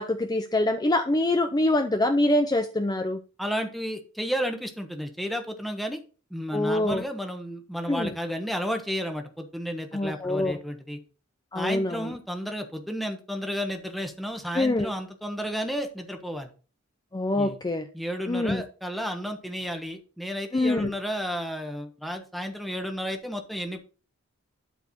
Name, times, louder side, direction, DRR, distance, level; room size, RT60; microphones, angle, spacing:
voice 1, 0.0-3.2 6.5-7.0 7.9-8.1 9.9-10.6 11.5-12.1 14.5-14.9 17.1-17.9 18.3-18.6 20.5-20.9, left 1 dB, 20° left, 7 dB, 0.6 m, -25 dB
voice 2, 3.4-6.0 6.3-11.0 11.5-16.5 17.3-17.6 17.9-23.8, equal, ahead, 4 dB, 1.3 m, -32 dB
12.0 x 4.7 x 4.3 m, 0.36 s
head